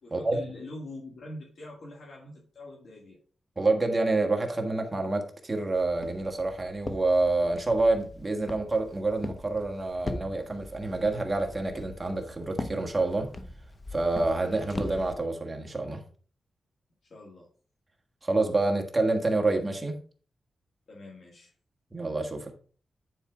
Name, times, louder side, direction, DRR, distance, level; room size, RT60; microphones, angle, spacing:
voice 1, 0.0-3.2 17.1-17.5 20.9-21.5, left 1 dB, 65° left, 2.3 m, -44 dB
voice 2, 3.6-13.3 13.9-16.0 18.2-20.0 21.9-22.5, right 2 dB, 20° right, 1.6 m, -27 dB
Walk footsteps, 5.8-15.1, left 2 dB, 30° left, 0.8 m, -41 dB
10.0 x 4.5 x 4.9 m
wide cardioid pair, 135°, 0 cm